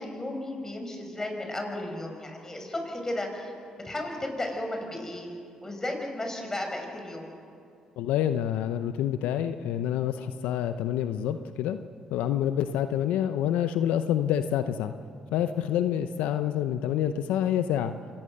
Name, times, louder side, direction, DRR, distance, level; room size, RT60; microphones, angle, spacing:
voice 1, 0.0-3.5 3.8-5.3 5.6-7.3, left 1 dB, 20° left, 3 dB, 6.2 m, -34 dB
voice 2, 8.0-11.8 12.1-14.9 15.3-17.9, left 10 dB, 85° left, 10 dB, 0.7 m, -27 dB
26.0 x 19.5 x 6.7 m, 2.4 s
supercardioid pair, 65°, 2 cm